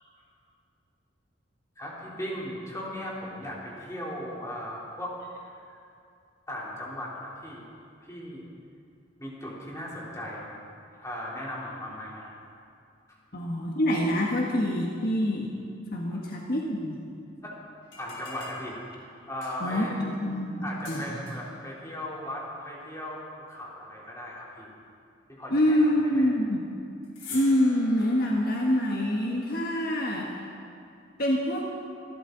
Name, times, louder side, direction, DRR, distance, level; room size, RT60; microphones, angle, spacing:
voice 1, 1.8-5.1 5.5-5.8 6.5-7.7 8.0-8.4 9.2-10.6 11.0-12.3 16.1-16.2 17.4-17.6 18.0-18.8 19.3-20.0 20.6-24.7 25.3-25.8 26.1-26.3, left 1 dB, 15° left, -5 dB, 3.5 m, -37 dB
voice 2, 13.3-15.5 15.9-17.0 19.6-21.2 25.5-26.7 27.3-30.4 31.2-31.7, left 1 dB, 50° left, -2 dB, 1.5 m, -26 dB
sound 1, 17.8-19.8 20.8-21.6 27.0-30.6, left 3 dB, 80° left, 4.9 m, -47 dB
26.5 x 12.5 x 4.0 m, 2.5 s
head